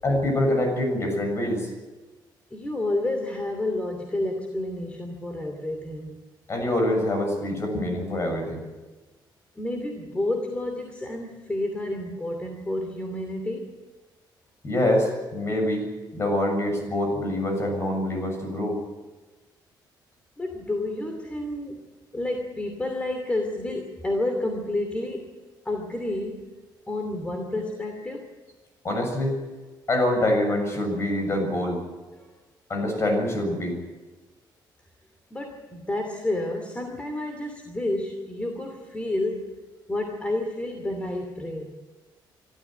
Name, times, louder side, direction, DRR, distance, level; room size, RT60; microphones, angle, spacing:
voice 1, 0.0-1.7 6.5-8.7 14.6-15.9 16.1-18.8 28.8-29.4 29.9-31.8 32.7-33.8, left 1 dB, 35° left, 4 dB, 7.0 m, -25 dB
voice 2, 2.5-6.2 9.6-13.8 20.4-21.8 22.1-25.3 25.6-26.5 26.9-28.3 32.2-32.3 35.3-39.6 39.9-41.7, left 1 dB, 15° left, 4 dB, 2.6 m, -30 dB
25.5 x 13.5 x 9.2 m, 1.2 s
cardioid pair, 135°, 8 cm